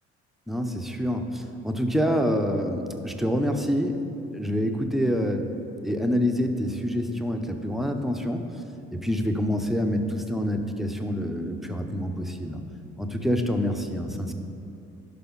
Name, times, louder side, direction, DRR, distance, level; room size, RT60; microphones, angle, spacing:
voice 1, 0.5-4.0 4.3-5.5 5.8-8.5 8.9-12.6 13.0-14.3, equal, ahead, 4 dB, 0.8 m, -26 dB
11.0 x 5.6 x 4.0 m, 2.6 s
hypercardioid pair, 50°, 34 cm